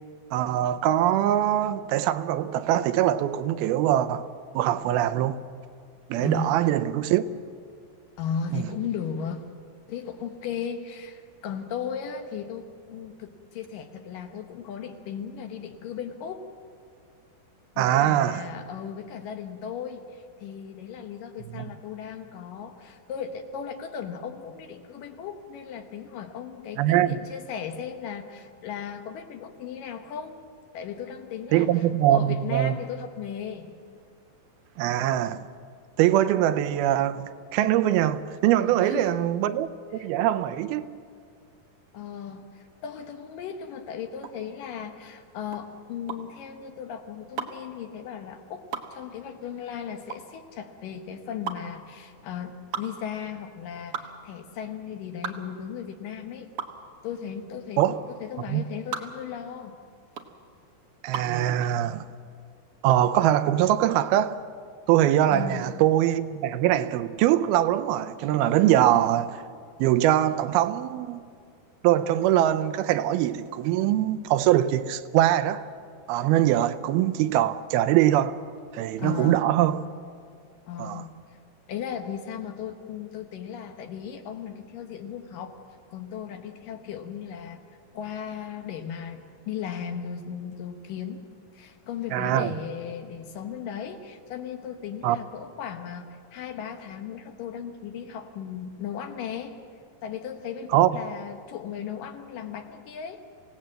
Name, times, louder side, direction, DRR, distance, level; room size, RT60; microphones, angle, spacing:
voice 1, 0.3-4.3 4.5-5.4 6.1-7.2 8.5-8.7 17.8-18.5 21.6-21.7 26.8-27.2 31.5-32.8 34.8-35.4 36.0-40.9 57.8-58.0 58.5-58.6 61.0-62.1 62.8-64.4 64.9-69.4 69.8-71.2 71.8-75.6 76.1-78.4 78.7-79.8 80.8-81.0 92.1-92.5 95.0-95.2 100.7-100.9, right 12 dB, 85° right, 2.6 m, -23 dB
voice 2, 6.2-6.8 8.2-9.4 9.9-16.4 17.8-30.4 30.7-33.7 38.6-39.3 40.0-40.1 41.9-56.5 57.0-59.8 65.3-65.7 79.0-79.5 80.7-81.1 81.7-85.6 85.9-87.6 87.9-91.3 91.5-99.6 100.0-103.2, left 7 dB, 70° left, 2.6 m, -36 dB
sound 1, 44.2-61.4, right 7 dB, 60° right, 1.5 m, -38 dB
26.5 x 17.5 x 7.6 m
omnidirectional pair, 4.4 m